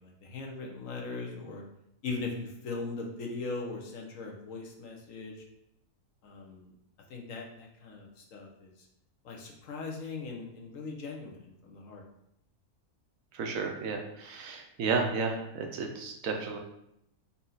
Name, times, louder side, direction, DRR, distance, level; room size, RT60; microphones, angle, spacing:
voice 1, 0.0-1.6 2.0-5.3 6.2-6.7 7.1-8.7 9.2-12.0, left 3 dB, 65° left, 1 dB, 1.1 m, -39 dB
voice 2, 13.3-16.6, right 4 dB, 70° right, 3 dB, 0.9 m, -32 dB
4.2 x 2.7 x 3.8 m, 0.79 s
omnidirectional pair, 1.6 m